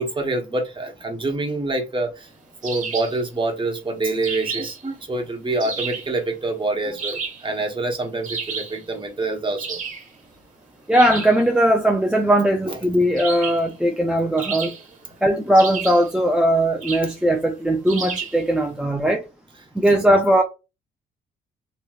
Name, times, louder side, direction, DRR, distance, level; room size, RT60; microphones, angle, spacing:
voice 1, 0.0-2.3 2.6-9.8 12.6-12.8, right 2 dB, 25° right, 1.1 m, -26 dB
sound 1, 2.6-3.2 4.2-4.8 5.6-6.1 7.0-7.5 8.2-8.8 9.6-10.1 10.9-11.4 13.2-13.7 14.4-15.0 15.5-16.1 16.8-17.2 17.9-18.4, right 5 dB, 40° right, 1.2 m, -31 dB
voice 2, 10.9-14.8 15.2-19.2 19.7-20.4, right 1 dB, 5° right, 0.4 m, -19 dB
3.0 x 3.0 x 2.3 m
cardioid pair, 90°, 20 cm